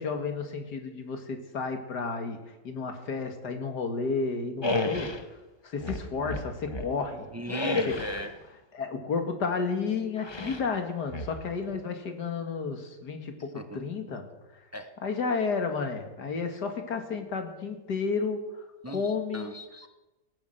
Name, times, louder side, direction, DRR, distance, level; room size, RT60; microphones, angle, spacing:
voice 1, 0.0-5.2 5.6-7.3 7.9-8.0 8.7-14.3 15.0-19.5, left 4 dB, 65° left, 6 dB, 2.4 m, -32 dB
sound 1, 4.6-5.3 5.8-7.0 7.5-8.3 10.2-10.7 11.1-11.8, left 2 dB, 20° left, 0.7 m, -32 dB
voice 2, 7.3-8.3 13.5-13.8 14.7-14.9 18.8-19.9, equal, 15° right, 8 dB, 0.6 m, -38 dB
18.0 x 10.0 x 7.9 m, 1.1 s
omnidirectional pair, 1.9 m